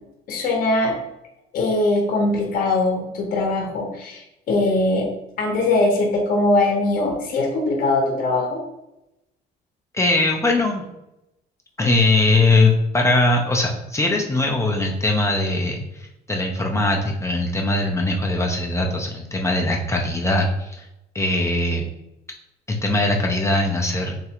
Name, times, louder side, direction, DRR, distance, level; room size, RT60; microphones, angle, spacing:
voice 1, 0.3-0.9 1.5-5.1 5.4-8.6, left 2 dB, 55° left, 0 dB, 0.8 m, -21 dB
voice 2, 9.9-10.8 11.8-20.9 21.1-21.8 22.7-24.1, left 2 dB, 15° left, 0 dB, 0.4 m, -21 dB
3.1 x 2.4 x 2.9 m, 0.89 s
cardioid pair, 110°, 17 cm